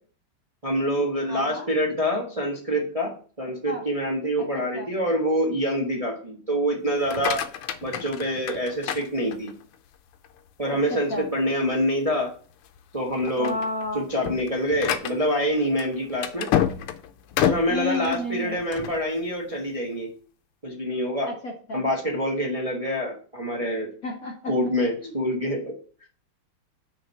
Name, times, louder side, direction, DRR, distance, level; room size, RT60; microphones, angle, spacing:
voice 1, 0.6-3.1 3.4-7.4 7.8-9.5 10.6-12.3 12.9-13.6 13.9-16.5 17.4-20.1 20.6-21.3 21.7-23.9 24.5-25.7, equal, 20° right, -1 dB, 1.1 m, -26 dB
voice 2, 1.3-1.7 3.7-3.8 4.7-4.9 10.9-11.3 13.4-14.0 17.7-18.6 21.3-21.8 24.0-24.5 25.0-25.1, left 2 dB, 45° left, 1 dB, 1.4 m, -31 dB
sound 1, 6.9-9.7 10.2-10.7 11.2-11.3 11.7-11.8 12.5-12.8 13.1-19.0, left 10 dB, 85° left, 1.6 m, -29 dB
6.4 x 4.5 x 5.6 m, 0.41 s
omnidirectional pair, 2.4 m